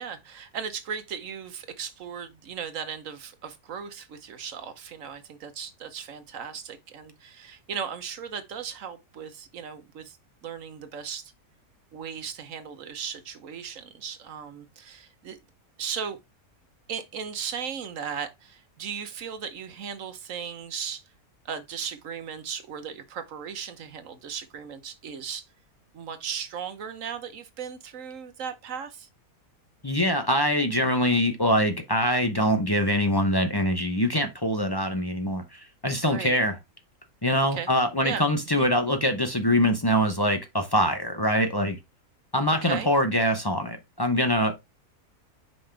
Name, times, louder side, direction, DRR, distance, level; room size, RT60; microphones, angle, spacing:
voice 1, 0.0-10.2 10.4-11.3 11.9-15.4 15.8-16.2 16.9-21.0 21.4-25.4 25.9-29.1 36.0-36.4 37.5-37.7 38.0-38.2 38.5-38.7 42.6-42.9, right 7 dB, 65° right, 1.2 m, -36 dB
voice 2, 29.8-36.6 37.2-41.8 42.3-44.5, equal, 25° left, 0.5 m, -24 dB
5.6 x 5.3 x 3.3 m
omnidirectional pair, 1.6 m